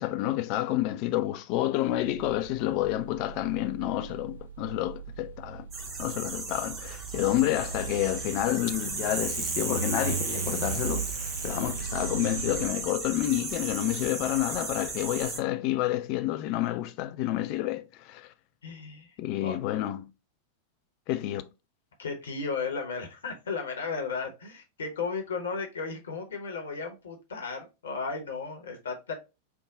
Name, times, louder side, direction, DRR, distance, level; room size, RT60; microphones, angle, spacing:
voice 1, 0.0-5.7 6.0-18.3 19.2-20.1 21.1-21.5, left 14 dB, 45° left, 0.3 m, -29 dB
sound 1, 1.9-12.7, right 7 dB, 65° right, 0.5 m, -38 dB
sound 2, 5.7-15.4, right 3 dB, 30° right, 0.9 m, -35 dB
voice 2, 18.6-19.6 22.0-29.1, left 4 dB, 65° left, 0.7 m, -35 dB
3.4 x 2.2 x 3.6 m
figure-of-eight pair, 90°, 0 cm